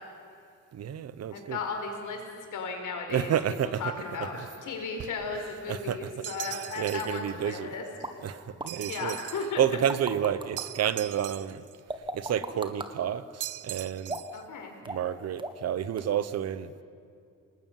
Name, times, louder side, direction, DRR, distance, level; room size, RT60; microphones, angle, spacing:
voice 1, 0.7-1.6 3.1-3.8 4.2-4.3 5.7-6.2 6.8-7.7 8.2-9.2 9.6-11.6 12.1-14.2 14.8-16.8, right 9 dB, 55° right, 15 dB, 1.0 m, -30 dB
voice 2, 1.3-2.2 2.5-3.3 3.8-7.8 8.9-9.6 14.3-14.7, left 4 dB, 85° left, 3 dB, 4.9 m, -35 dB
sound 1, 6.2-7.2 8.7-9.5 10.6-11.7 13.4-14.4, right 15 dB, 85° right, 0.6 m, -40 dB
sound 2, 8.0-8.1 8.6-8.7 9.6-10.6 11.9-12.9 14.1-14.4 14.8-15.1 15.4-15.7 16.0-16.1, right 2 dB, 15° right, 1.5 m, -36 dB
28.0 x 19.5 x 9.2 m, 2.5 s
wide cardioid pair, 175°, 30 cm